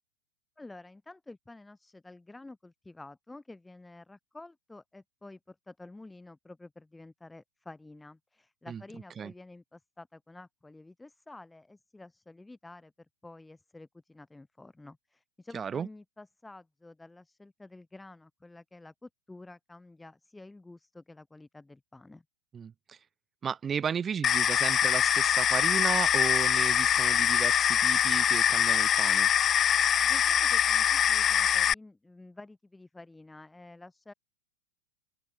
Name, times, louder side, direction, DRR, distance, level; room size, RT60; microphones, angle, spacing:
voice 1, 0.6-12.9 13.2-22.2 30.0-34.1, left 2 dB, 5° left, 5.7 m, -50 dB
voice 2, 15.5-15.9 22.5-23.0 23.4-29.3, right 7 dB, 20° right, 2.0 m, -34 dB
sound 1, 24.2-31.7, left 9 dB, 25° left, 0.6 m, -24 dB
open air
supercardioid pair, 145°, 0 cm